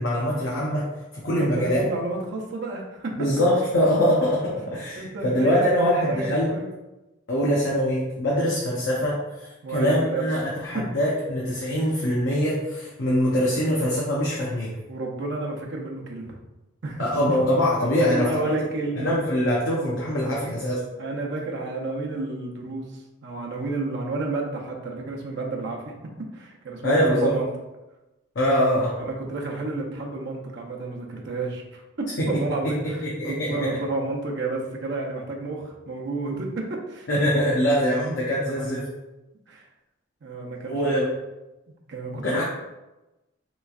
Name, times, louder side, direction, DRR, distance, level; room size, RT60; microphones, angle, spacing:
voice 1, 0.0-1.8 3.2-6.5 7.3-14.8 17.0-18.5 19.0-20.8 26.8-27.3 28.4-29.0 32.2-33.8 37.1-38.8 40.7-41.1 42.1-42.4, equal, 65° left, -5 dB, 0.6 m, -23 dB
voice 2, 1.4-3.3 4.9-6.7 9.6-10.2 10.6-10.9 14.9-16.3 16.8-17.0 18.0-19.1 21.0-25.9 26.3-27.5 29.0-31.8 32.3-37.1 38.2-38.8 39.5-39.7 40.2-40.9 41.9-42.4, right 2 dB, 60° right, 0 dB, 0.6 m, -31 dB
3.4 x 3.0 x 2.3 m, 1.0 s
head